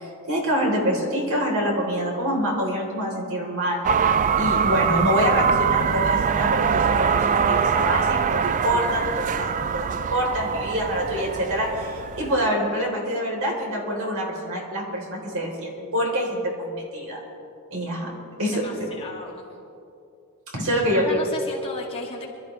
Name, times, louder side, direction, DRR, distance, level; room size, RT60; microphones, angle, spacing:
voice 1, 0.0-3.8 4.3-17.2 17.7-18.1 18.4-18.6 20.5-21.2, equal, 65° right, -1 dB, 3.5 m, -26 dB
sound 1, 3.8-12.5, right 6 dB, 35° right, 0.3 m, -23 dB
voice 2, 18.5-19.5 20.6-22.3, left 3 dB, 25° left, -4 dB, 2.3 m, -36 dB
25.0 x 13.0 x 3.2 m, 2.7 s
head